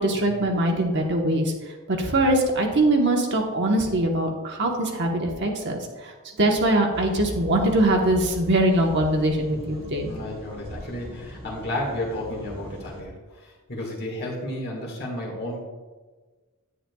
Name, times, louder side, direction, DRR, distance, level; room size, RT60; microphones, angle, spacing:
voice 1, 0.0-1.5 1.9-6.1 6.4-10.1, right 1 dB, 55° right, 1 dB, 1.1 m, -22 dB
sound 1, 6.9-13.0, right 1 dB, 25° right, 2.4 m, -39 dB
voice 2, 10.1-15.6, left 1 dB, 45° left, -2 dB, 1.7 m, -32 dB
10.0 x 10.0 x 2.3 m, 1.3 s
head